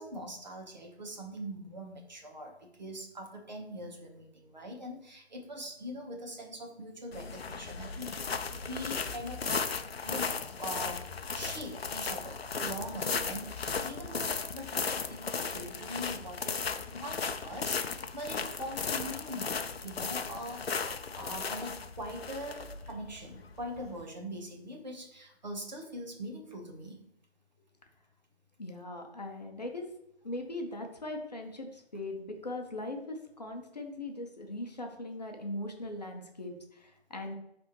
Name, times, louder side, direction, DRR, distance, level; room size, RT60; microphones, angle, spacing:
voice 1, 0.0-8.3 8.6-10.3 10.6-11.1 11.3-16.6 16.9-19.5 19.8-27.0, equal, 40° right, 2 dB, 1.1 m, -42 dB
sound 1, 7.1-24.0, left 5 dB, 65° left, 0.6 m, -36 dB
voice 2, 28.6-29.9 30.2-37.3, left 2 dB, 40° left, 2 dB, 0.8 m, -40 dB
9.0 x 3.5 x 3.0 m, 0.80 s
figure-of-eight pair, 160°, 33 cm